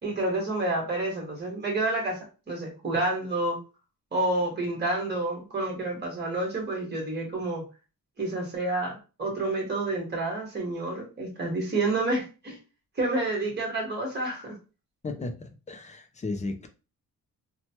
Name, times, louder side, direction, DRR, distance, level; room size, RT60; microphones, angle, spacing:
voice 1, 0.0-2.2 2.5-3.6 4.1-7.6 8.2-8.9 9.2-12.6 13.0-14.5, right 2 dB, 30° right, 1.2 m, -29 dB
voice 2, 15.0-16.7, left 3 dB, 20° left, 0.3 m, -35 dB
3.0 x 2.1 x 2.8 m
wide cardioid pair, 170°, 35 cm